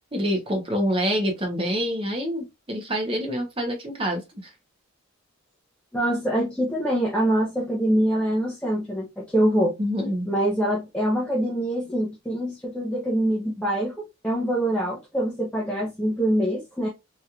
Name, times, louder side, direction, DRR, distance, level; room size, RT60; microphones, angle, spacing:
voice 1, 0.1-4.5 9.8-10.3, equal, 25° right, 0.9 m, -26 dB
voice 2, 5.9-9.7 10.3-16.9, right 1 dB, 5° left, 0.6 m, -24 dB
3.1 x 2.9 x 2.3 m
head